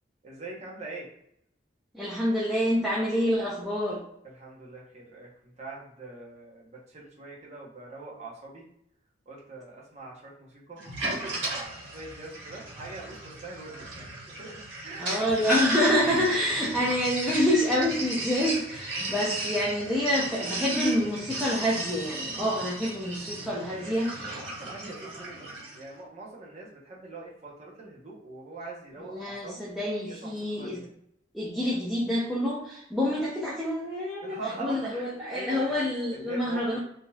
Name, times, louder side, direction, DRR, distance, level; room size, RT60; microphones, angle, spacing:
voice 1, 0.2-1.1 4.2-8.6 9.3-15.5 16.3-16.5 22.5-22.7 23.7-29.6 30.1-30.9 34.2-36.8, right 3 dB, 40° right, -3 dB, 0.9 m, -43 dB
voice 2, 1.9-4.0 15.0-24.4 29.0-30.8 31.3-36.8, equal, ahead, -8 dB, 0.6 m, -27 dB
Sink (filling or washing), 10.8-25.8, right 1 dB, 85° right, 1.4 m, -34 dB
3.7 x 2.8 x 2.3 m, 0.72 s
head